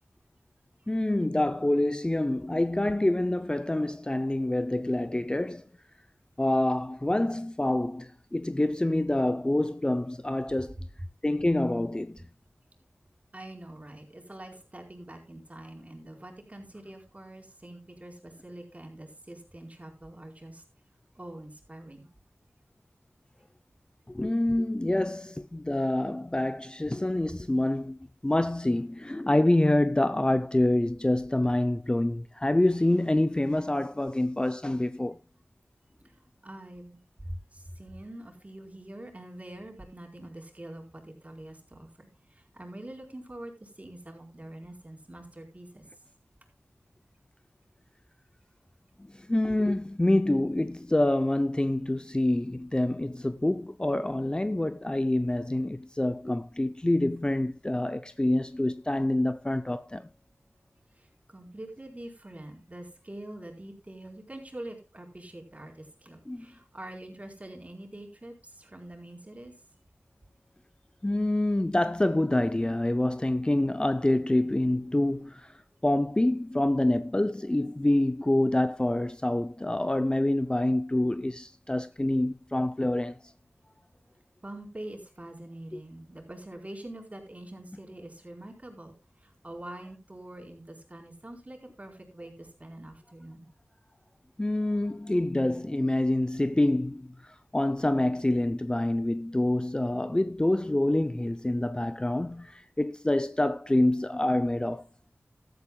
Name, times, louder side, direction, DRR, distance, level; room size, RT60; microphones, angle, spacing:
voice 1, 0.9-5.6 6.4-10.8 11.2-12.3 24.1-28.0 28.2-35.2 49.1-60.1 66.3-66.5 71.0-83.2 85.7-85.8 94.4-104.9, left 1 dB, 20° left, 0.6 m, -26 dB
voice 2, 13.3-20.6 21.1-22.1 36.0-45.8 60.9-69.5 84.4-93.5, right 1 dB, 30° right, 4.5 m, -45 dB
15.5 x 13.0 x 2.3 m
wide cardioid pair, 55°, 5 cm